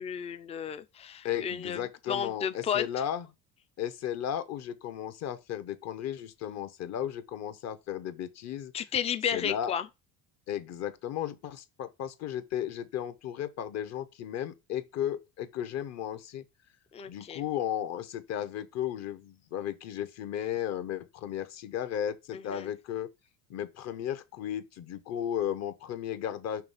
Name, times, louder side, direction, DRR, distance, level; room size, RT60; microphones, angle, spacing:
voice 1, 0.0-2.8 8.7-9.9 16.9-17.4 22.3-22.7, left 8 dB, 20° left, 0.3 m, -33 dB
voice 2, 1.2-3.2 3.8-8.7 9.3-9.7 10.5-16.4 17.1-23.1 23.5-26.6, left 10 dB, 45° left, 0.8 m, -35 dB
5.9 x 3.2 x 5.4 m
cardioid pair, 160°, 38 cm